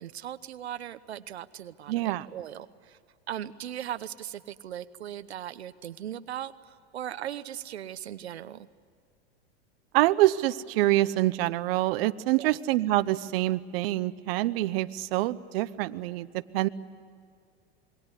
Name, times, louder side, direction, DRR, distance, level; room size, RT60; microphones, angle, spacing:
voice 1, 0.0-3.0 3.3-8.7 12.4-12.6, right 11 dB, 90° right, 12 dB, 1.0 m, -39 dB
voice 2, 1.9-2.3 9.9-16.3 16.5-16.7, right 16 dB, 65° right, 13 dB, 1.0 m, -26 dB
27.0 x 21.5 x 9.8 m, 2.2 s
hypercardioid pair, 105°, 32 cm